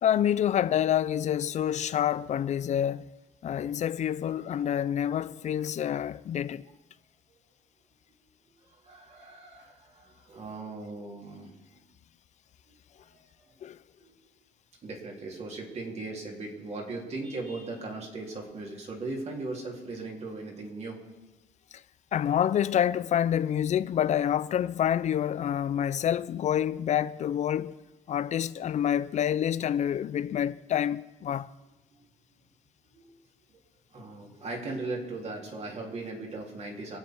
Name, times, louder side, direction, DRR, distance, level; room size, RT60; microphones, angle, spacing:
voice 1, 0.0-3.1 3.4-6.6 13.6-13.8 22.1-27.8 28.1-31.5, left 10 dB, 45° left, 0.6 m, -27 dB
voice 2, 4.4-5.0 8.6-11.6 12.7-13.3 14.0-14.2 14.8-21.0 31.9-32.1 32.9-33.1 33.5-33.6 33.9-37.0, right 3 dB, 40° right, 3.8 m, -39 dB
25.0 x 8.4 x 4.8 m
cardioid pair, 110°, 17 cm